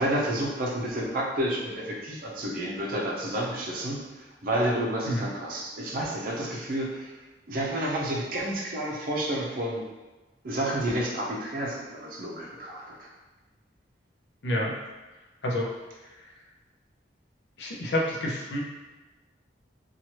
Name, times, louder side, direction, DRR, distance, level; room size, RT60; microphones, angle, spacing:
voice 1, 0.0-7.1 7.5-9.8 10.4-13.1, right 1 dB, 50° right, -3 dB, 0.6 m, -30 dB
voice 2, 17.6-18.6, left 1 dB, 70° left, -1 dB, 0.6 m, -28 dB
2.9 x 2.3 x 2.9 m, 1.1 s
head